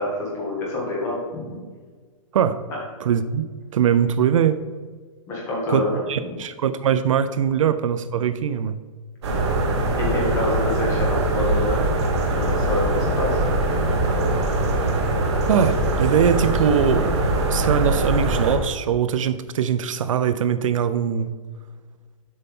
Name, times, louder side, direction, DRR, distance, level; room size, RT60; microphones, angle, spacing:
voice 1, 0.0-1.6 5.3-6.3 10.0-11.8 12.3-13.4 17.6-17.7, left 2 dB, 15° left, -4 dB, 1.7 m, -27 dB
voice 2, 3.0-3.5 3.7-4.6 5.7-8.8 15.5-17.2 17.5-21.3, right 8 dB, 65° right, 12 dB, 0.4 m, -21 dB
sound 1, 9.2-18.6, right 2 dB, 50° right, 1.4 m, -22 dB
7.8 x 5.6 x 3.7 m, 1.5 s
hypercardioid pair, 175°, 18 cm